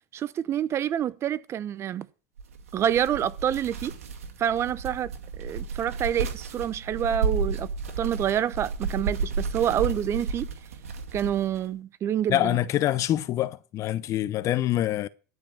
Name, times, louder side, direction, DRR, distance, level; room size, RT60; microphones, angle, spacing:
voice 1, 0.1-2.1 2.7-3.9 4.4-5.1 5.4-7.7 8.0-10.5 11.1-12.6, right 10 dB, 35° right, 0.7 m, -27 dB
sound 1, 2.4-11.6, right 4 dB, 85° right, 2.1 m, -32 dB
voice 2, 12.3-15.1, left 13 dB, 45° left, 0.7 m, -25 dB
12.0 x 5.1 x 7.3 m
hypercardioid pair, 105°, 8 cm